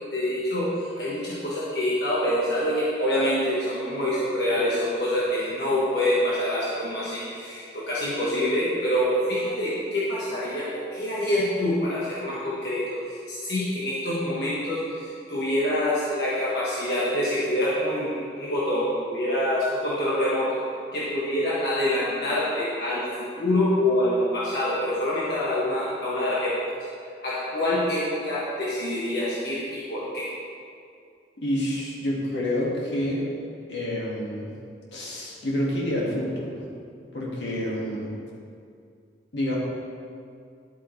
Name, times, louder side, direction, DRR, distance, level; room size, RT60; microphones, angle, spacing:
voice 1, 0.1-20.6 20.9-26.6 27.2-30.3, left 1 dB, 65° left, -8 dB, 1.5 m, -26 dB
voice 2, 31.4-33.3 33.7-34.5 34.9-36.6 37.1-38.1 39.3-39.6, left 1 dB, 80° left, -4 dB, 2.1 m, -28 dB
11.5 x 8.4 x 3.3 m, 2.4 s
head